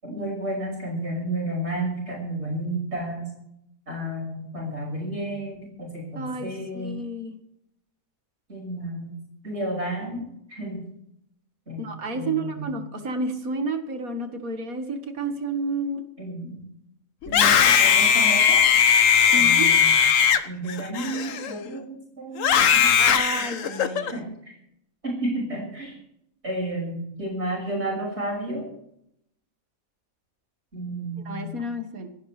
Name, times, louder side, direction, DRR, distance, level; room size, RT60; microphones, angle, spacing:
voice 1, 0.0-3.3 3.9-7.0 8.5-9.1 9.4-10.8 11.7-12.7 16.2-16.6 17.3-18.6 19.3-20.1 20.4-23.0 23.4-23.5 24.0-24.5 25.0-26.0 26.4-28.7 30.7-31.6, right 1 dB, 50° right, -2 dB, 6.4 m, -32 dB
voice 2, 6.2-7.3 11.8-16.0 19.3-19.7 23.0-24.1 31.3-32.1, right 2 dB, 80° right, 6 dB, 2.2 m, -30 dB
Screaming, 17.2-21.7 22.4-24.1, left 8 dB, 70° left, 1.2 m, -19 dB
26.0 x 11.5 x 3.4 m, 0.76 s
omnidirectional pair, 1.5 m